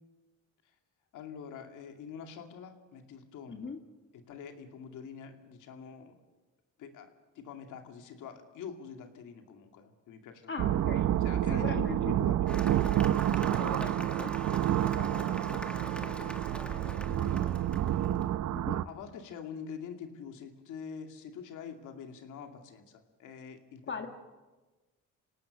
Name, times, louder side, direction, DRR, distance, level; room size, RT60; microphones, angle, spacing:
voice 1, 1.1-3.7 4.3-6.2 6.8-7.1 7.3-10.7 11.2-12.6 14.6-16.3 16.6-17.5 18.4-23.8, left 7 dB, 85° left, 5 dB, 2.5 m, -45 dB
voice 2, 3.5-3.8 10.5-11.1 11.5-12.0 13.4-14.3 18.5-18.8 23.9-24.1, left 5 dB, 40° left, 5 dB, 2.0 m, -40 dB
sound 1, 10.6-18.8, right 12 dB, 65° right, 0.7 m, -29 dB
Cheering / Applause, 12.5-18.2, equal, 5° left, 1.8 m, -44 dB
26.0 x 18.0 x 6.6 m, 1.2 s
cardioid pair, 90°, 30 cm